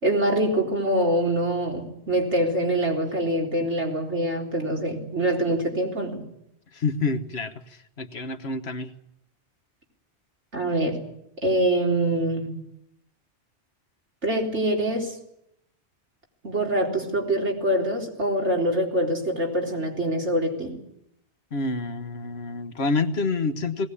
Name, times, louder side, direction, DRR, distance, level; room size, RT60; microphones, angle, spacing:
voice 1, 0.0-6.3 10.5-11.0 11.4-12.6 14.2-15.2 16.4-20.8, right 1 dB, 85° right, 0 dB, 4.4 m, -24 dB
voice 2, 6.7-7.5 8.0-8.9 21.5-23.9, left 3 dB, 65° left, 9 dB, 1.5 m, -27 dB
19.5 x 18.5 x 9.8 m, 0.77 s
omnidirectional pair, 1.2 m